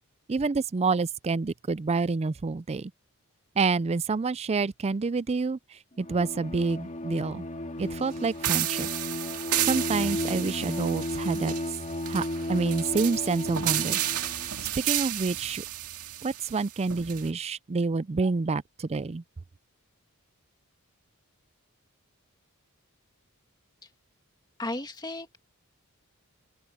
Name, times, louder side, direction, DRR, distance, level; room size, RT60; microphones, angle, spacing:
voice 1, 0.3-2.9 3.6-5.6 6.0-7.5 7.8-8.9 9.6-11.5 12.1-14.0 14.8-15.6 16.2-19.2, right 4 dB, 30° right, 0.4 m, -28 dB
Bowed string instrument, 6.0-14.5, left 1 dB, 35° left, 2.1 m, -34 dB
sound 1, 8.4-17.3, right 13 dB, 90° right, 2.0 m, -32 dB
voice 2, 24.6-25.4, left 2 dB, 20° left, 1.9 m, -34 dB
open air
head